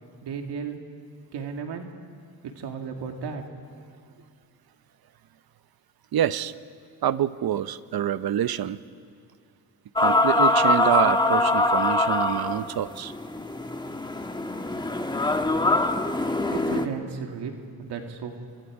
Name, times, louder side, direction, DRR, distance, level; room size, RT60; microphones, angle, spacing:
voice 1, 0.2-0.8 1.3-1.9 2.4-3.4 16.5-18.3, right 6 dB, 85° right, 3 dB, 2.1 m, -34 dB
voice 2, 6.1-6.5 7.0-8.8 10.0-13.1, right 10 dB, 65° right, 14 dB, 0.8 m, -26 dB
sound 1, 10.0-16.9, left 2 dB, 10° left, 1.3 m, -23 dB
28.0 x 26.5 x 4.9 m, 2.4 s
cardioid pair, 90°, 39 cm